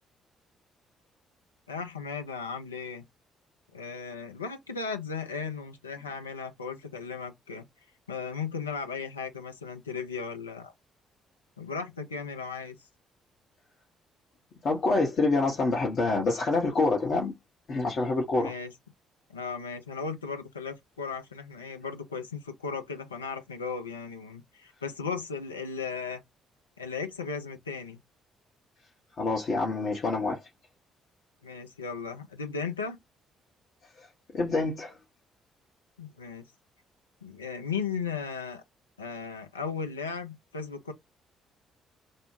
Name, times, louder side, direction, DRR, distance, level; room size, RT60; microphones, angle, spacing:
voice 1, 1.7-3.0 3.7-7.7 8.1-10.7 11.6-12.8 18.4-18.7 19.3-26.2 26.8-28.0 31.4-33.0 36.0-36.5 37.2-38.6 39.0-40.9, left 5 dB, 85° left, 0.5 m, -36 dB
voice 2, 14.6-17.3 17.7-18.5 29.2-30.4 34.3-34.9, left 3 dB, 50° left, 0.7 m, -26 dB
2.5 x 2.1 x 3.1 m
figure-of-eight pair, 45°, 0 cm